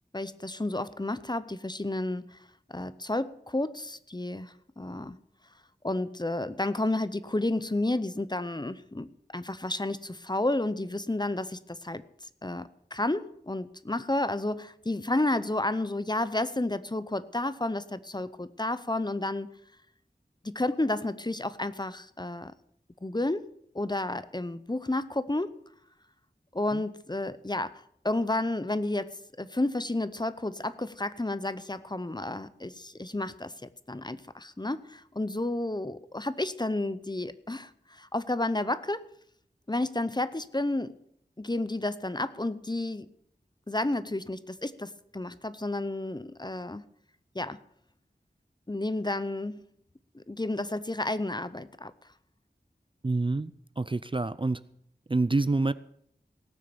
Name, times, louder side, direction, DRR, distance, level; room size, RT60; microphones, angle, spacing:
voice 1, 0.1-2.4 2.7-5.2 5.8-9.1 9.3-12.0 12.4-19.5 20.4-22.5 23.0-23.5 23.7-25.6 26.5-29.1 29.4-39.0 39.7-41.0 41.4-43.1 43.7-46.8 47.3-47.6 48.7-49.6 50.1-51.9, left 2 dB, 25° left, 15 dB, 0.6 m, -31 dB
voice 2, 53.0-54.6 55.1-55.7, right 3 dB, 30° right, 15 dB, 0.4 m, -27 dB
17.5 x 6.4 x 7.0 m, 0.71 s
wide cardioid pair, 45°, 18 cm